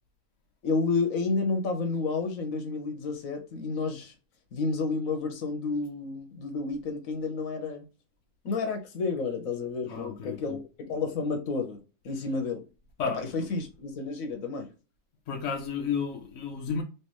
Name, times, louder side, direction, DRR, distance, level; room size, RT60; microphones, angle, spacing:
voice 1, 0.6-4.1 4.5-7.8 8.4-10.6 10.9-12.7 13.1-14.7, left 4 dB, 85° left, 1.3 m, -30 dB
voice 2, 9.9-10.6 13.0-13.2 15.3-16.8, left 6 dB, 70° left, 1.1 m, -32 dB
3.4 x 3.0 x 2.9 m
omnidirectional pair, 1.4 m